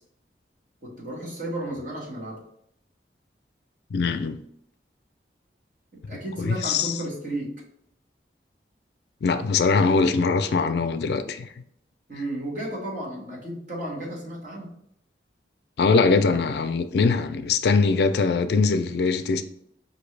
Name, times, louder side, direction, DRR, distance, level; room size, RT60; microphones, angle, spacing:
voice 1, 0.8-2.4 5.9-7.6 12.1-14.8, right 1 dB, 45° right, 1.3 m, -33 dB
voice 2, 3.9-4.4 6.4-6.9 9.2-11.5 15.8-19.4, left 4 dB, 65° left, 0.4 m, -22 dB
5.2 x 2.7 x 3.2 m
head